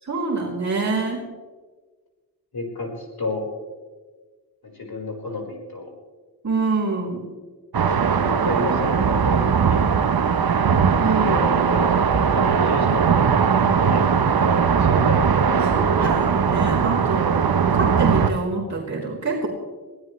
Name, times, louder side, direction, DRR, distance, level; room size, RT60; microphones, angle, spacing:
voice 1, 0.0-1.2 6.4-7.2 11.0-11.5 15.6-17.4 17.7-19.5, right 3 dB, 45° right, -5 dB, 3.6 m, -25 dB
voice 2, 2.5-3.5 4.6-5.9 8.2-9.9 11.2-13.1 13.5-16.1, left 2 dB, 60° left, 0 dB, 4.7 m, -31 dB
sound 1, 7.7-18.3, right 6 dB, 60° right, 0.9 m, -19 dB
23.0 x 16.5 x 3.2 m, 1.4 s
wide cardioid pair, 105°, 40 cm